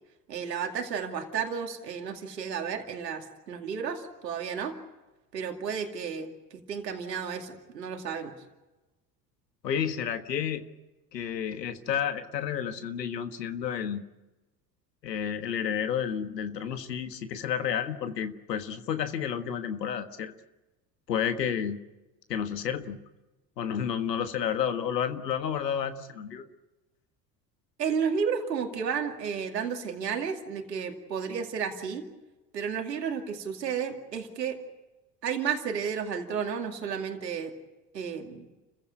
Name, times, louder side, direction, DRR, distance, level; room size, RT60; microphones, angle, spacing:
voice 1, 0.3-4.7 5.3-8.3 27.8-32.0 32.5-34.6 35.2-37.5 37.9-38.5, right 6 dB, 90° right, 3 dB, 2.4 m, -32 dB
voice 2, 9.6-10.6 11.1-14.1 15.0-20.3 21.1-21.8 22.3-23.0 23.6-26.4, left 8 dB, 85° left, 9 dB, 1.6 m, -31 dB
29.5 x 15.5 x 9.6 m, 1.1 s
hypercardioid pair, 70°, 48 cm